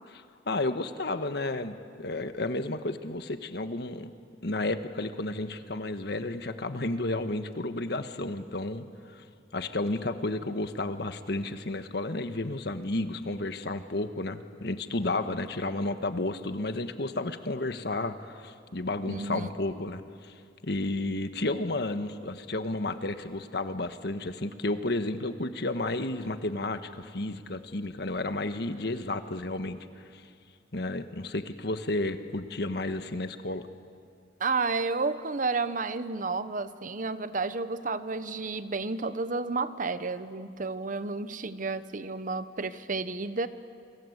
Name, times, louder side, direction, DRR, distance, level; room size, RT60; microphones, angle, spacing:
voice 1, 0.5-4.1 4.4-8.9 9.1-9.2 9.5-20.3 20.6-29.8 30.1-30.2 30.7-33.7, left 2 dB, 65° left, 9 dB, 1.5 m, -32 dB
voice 2, 19.1-19.5 34.4-43.5, right 3 dB, 50° right, 13 dB, 1.0 m, -31 dB
28.5 x 25.5 x 8.1 m, 2.3 s
head